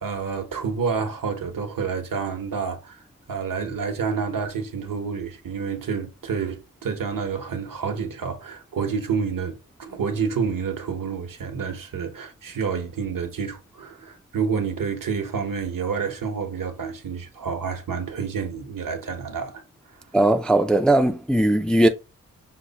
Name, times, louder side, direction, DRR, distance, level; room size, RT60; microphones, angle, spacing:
voice 1, 0.0-3.0 3.3-19.6, right 6 dB, 70° right, 1.0 m, -29 dB
voice 2, 20.1-21.9, right 1 dB, 5° left, 0.3 m, -18 dB
6.0 x 2.0 x 4.0 m
wide cardioid pair, 130°, 34 cm